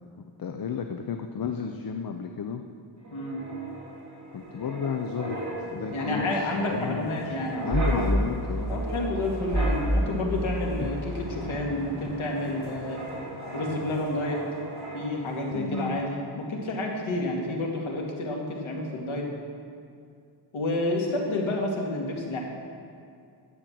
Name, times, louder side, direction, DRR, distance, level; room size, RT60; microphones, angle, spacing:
voice 1, 0.2-2.6 4.3-5.4 5.7-7.3 7.6-8.8 10.8-10.9 15.5-16.0, left 6 dB, 50° left, 5 dB, 0.6 m, -32 dB
Wind, 3.0-15.4 15.7-16.0, right 1 dB, 35° right, 3.7 m, -32 dB
voice 2, 5.9-8.1 8.7-13.0 13.5-14.4 14.9-19.2 20.5-22.4, left 2 dB, 90° left, -1 dB, 2.4 m, -30 dB
11.5 x 7.8 x 7.5 m, 2.4 s
wide cardioid pair, 145°, 47 cm